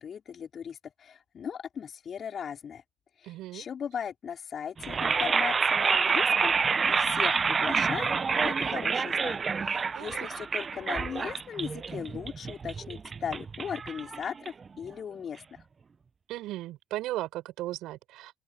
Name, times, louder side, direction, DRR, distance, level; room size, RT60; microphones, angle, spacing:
voice 1, 0.0-2.8 3.2-6.5 6.9-15.6, left 7 dB, 50° left, 5.4 m, -38 dB
voice 2, 3.2-3.7 9.9-10.4 16.3-18.3, right 16 dB, 70° right, 6.3 m, -37 dB
sound 1, 4.8-14.8, right 5 dB, 35° right, 1.1 m, -28 dB
open air
hypercardioid pair, 60°, 0 cm